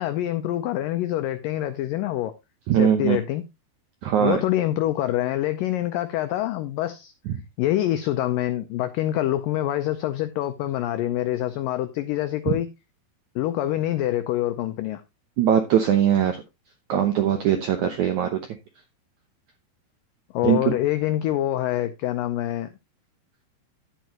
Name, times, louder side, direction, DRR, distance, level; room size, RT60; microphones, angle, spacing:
voice 1, 0.0-2.3 2.7-3.4 4.2-7.1 7.6-12.7 13.4-15.0 20.3-22.7, left 13 dB, 90° left, 1.9 m, -25 dB
voice 2, 2.7-3.2 4.0-4.4 7.3-7.4 12.5-12.6 15.4-16.4 16.9-18.4 20.4-20.6, right 9 dB, 80° right, 1.7 m, -21 dB
10.5 x 9.3 x 2.9 m
omnidirectional pair, 4.8 m